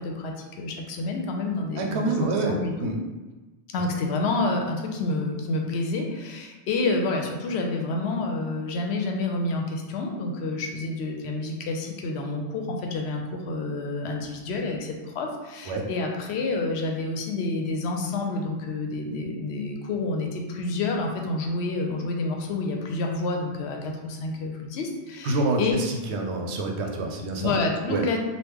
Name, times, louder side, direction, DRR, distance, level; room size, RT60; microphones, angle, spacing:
voice 1, 0.0-2.9 3.7-25.7 27.4-28.2, left 3 dB, 75° left, 2 dB, 0.8 m, -29 dB
voice 2, 1.8-2.5 2.8-2.9 15.7-15.9 25.2-27.5 27.9-28.1, right 3 dB, 85° right, 2 dB, 0.9 m, -27 dB
3.1 x 2.2 x 3.4 m, 1.2 s
omnidirectional pair, 1.1 m